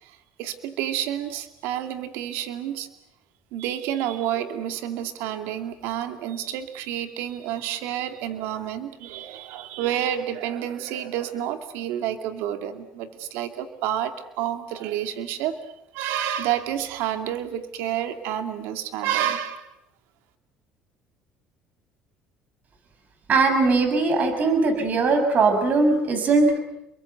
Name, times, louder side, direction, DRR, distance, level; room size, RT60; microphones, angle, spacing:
voice 1, 0.0-2.9 3.5-15.5 15.9-19.7, right 11 dB, 80° right, 8 dB, 2.4 m, -29 dB
voice 2, 23.3-26.6, right 3 dB, 45° right, 7 dB, 6.8 m, -20 dB
30.0 x 22.5 x 8.1 m, 0.84 s
supercardioid pair, 95°, 4 cm